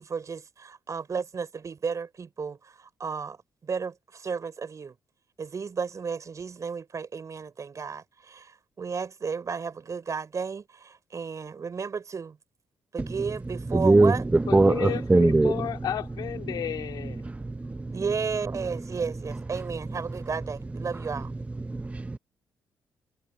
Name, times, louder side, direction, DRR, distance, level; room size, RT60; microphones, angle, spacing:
voice 1, 0.0-3.4 3.6-5.0 5.4-12.4 12.9-14.3 17.9-21.3, right 5 dB, 45° right, 4.8 m, -33 dB
voice 2, 13.7-14.1 14.5-15.5 17.6-17.9 21.7-22.2, right 2 dB, 20° right, 0.6 m, -20 dB
voice 3, 14.5-17.3, left 10 dB, 70° left, 2.2 m, -33 dB
supercardioid pair, 50°, 7 cm